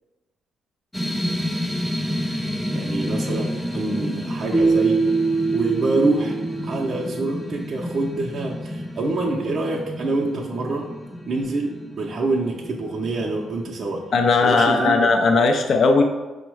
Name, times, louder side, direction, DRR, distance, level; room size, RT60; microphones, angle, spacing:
sound 1, 0.9-14.4, equal, ahead, 0.5 m, -30 dB
voice 1, 2.7-5.2 5.5-10.9 11.3-14.1 14.4-15.1, right 3 dB, 50° right, -2 dB, 0.6 m, -26 dB
Keyboard (musical), 4.5-7.4, right 4 dB, 25° left, 0.9 m, -23 dB
voice 2, 14.1-16.0, left 4 dB, 55° left, 3 dB, 0.4 m, -17 dB
5.2 x 2.1 x 4.6 m, 1.2 s
cardioid pair, 90°, 0 cm